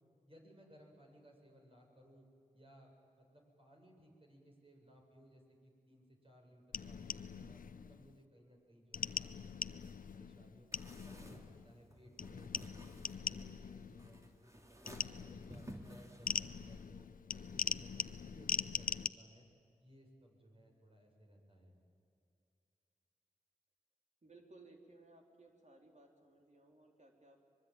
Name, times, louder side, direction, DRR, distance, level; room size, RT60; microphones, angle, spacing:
voice 1, 0.3-2.2 2.5-2.9 3.2-9.8 10.1-12.5 12.9-17.1 17.3-19.5 19.8-21.7, equal, 40° right, 0 dB, 7.5 m, -62 dB
sound 1, 6.7-8.2 8.9-11.8 12.2-14.4 14.9-19.1, left 6 dB, 80° left, 0.6 m, -42 dB
sound 2, 10.7-16.8, equal, 20° right, 3.2 m, -55 dB
voice 2, 24.2-27.4, right 2 dB, 55° right, 1 dB, 3.9 m, -61 dB
24.5 x 22.0 x 9.2 m, 2.6 s
cardioid pair, 50°, 14 cm